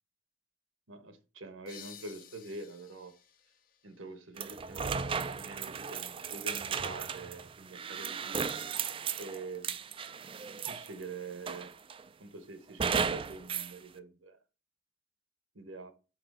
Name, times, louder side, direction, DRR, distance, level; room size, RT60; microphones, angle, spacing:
voice 1, 0.9-3.1 3.8-8.5 9.2-9.8 10.7-11.7 12.2-14.4 15.5-15.9, right 3 dB, 75° right, 10 dB, 1.1 m, -45 dB
sound 1, 1.7-5.1, left 8 dB, 45° left, 0.7 m, -55 dB
sound 2, 4.4-11.0 11.5-12.0 12.8-13.7, right 6 dB, 25° right, 0.3 m, -35 dB
5.9 x 3.9 x 5.3 m, 0.32 s
head